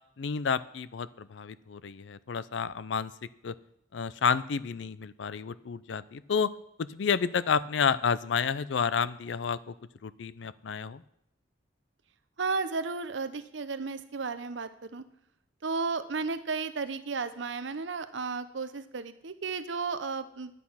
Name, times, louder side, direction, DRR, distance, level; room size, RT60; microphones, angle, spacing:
voice 1, 0.2-3.1 3.4-3.5 3.9-6.5 6.9-9.7 10.0-11.0, left 6 dB, 70° left, 18 dB, 0.5 m, -30 dB
voice 2, 12.4-15.0 15.6-20.5, right 4 dB, 75° right, 12 dB, 0.7 m, -33 dB
10.5 x 8.3 x 5.7 m, 0.74 s
head